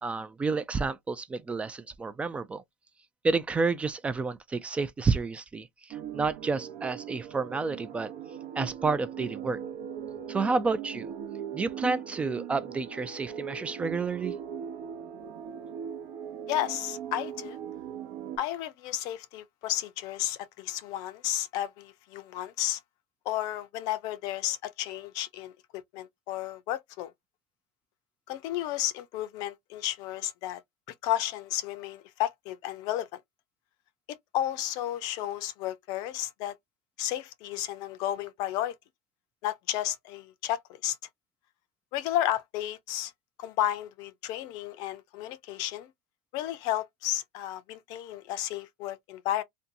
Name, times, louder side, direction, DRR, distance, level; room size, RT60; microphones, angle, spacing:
voice 1, 0.0-2.6 3.2-8.1 8.6-9.6 10.3-11.1 11.5-14.4, right 4 dB, 15° right, 0.3 m, -30 dB
sound 1, 5.9-18.4, right 8 dB, 60° right, 0.7 m, -39 dB
voice 2, 16.5-17.6 18.4-22.8 23.3-27.1 28.3-30.6 31.0-33.1 34.1-36.6 37.0-38.8 39.4-41.0 41.9-43.1 43.4-45.9 46.3-49.4, left 12 dB, 55° left, 0.5 m, -32 dB
2.6 x 2.2 x 2.5 m
supercardioid pair, 120°, 8 cm